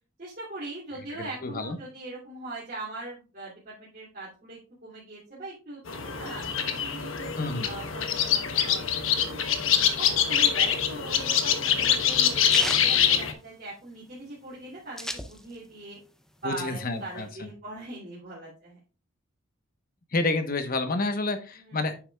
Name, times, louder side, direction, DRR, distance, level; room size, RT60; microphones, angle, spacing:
voice 1, 0.2-7.3 7.6-9.4 10.0-16.0 16.4-18.8 21.5-22.0, right 2 dB, 45° right, -7 dB, 2.9 m, -41 dB
voice 2, 1.2-1.8 7.4-7.7 16.4-17.5 20.1-21.9, left 2 dB, 45° left, 7 dB, 1.1 m, -29 dB
sound 1, 5.9-13.3, left 8 dB, 80° left, 1.0 m, -25 dB
sound 2, 12.5-13.9 14.3-14.4 14.5-15.8 16.2-17.3, left 1 dB, 5° left, 0.7 m, -36 dB
9.7 x 7.0 x 2.4 m, 0.34 s
head